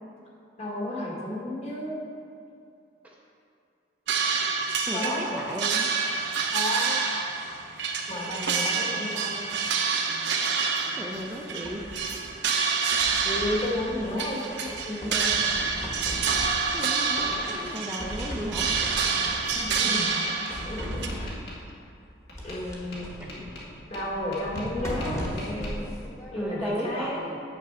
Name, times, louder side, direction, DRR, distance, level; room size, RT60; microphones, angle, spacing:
voice 1, 0.6-2.0 4.9-5.5 6.5-7.0 8.1-9.4 13.2-15.4 19.5-20.1 20.7-21.3 22.4-23.1 23.9-25.8 26.3-27.3, left 1 dB, 35° left, -4 dB, 1.7 m, -32 dB
sound 1, 4.1-21.1, right 5 dB, 65° right, 0.8 m, -28 dB
voice 2, 4.9-5.9 11.0-11.8 16.7-18.7 23.2-24.1 26.4-27.4, equal, 10° right, -3 dB, 0.5 m, -35 dB
sound 2, 11.2-12.4 12.9-14.3 14.7-16.8 17.1-17.7 18.0-19.9 20.5-21.6 22.3-26.8, equal, 15° left, 1.3 m, -38 dB
Tap, 15.7-16.4 16.9-17.4 18.2-18.3 19.0-19.3 19.8-20.5 21.1-21.6 22.3-22.6 22.9-24.8 25.0-25.7, left 1 dB, 60° left, 1.9 m, -44 dB
7.5 x 6.5 x 5.6 m, 2.5 s
head